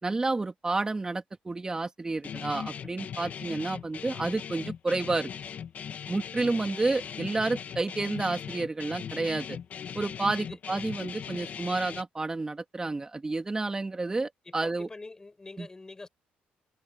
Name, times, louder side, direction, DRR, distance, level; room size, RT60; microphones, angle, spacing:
voice 1, 0.0-5.3 6.1-9.6 9.9-14.9 15.6-15.7, right 3 dB, 20° right, 3.0 m, -30 dB
Guitar, 2.2-12.0, left 8 dB, 55° left, 2.8 m, -39 dB
voice 2, 14.4-16.1, left 3 dB, 20° left, 5.8 m, -45 dB
cardioid pair, 110°, 3 cm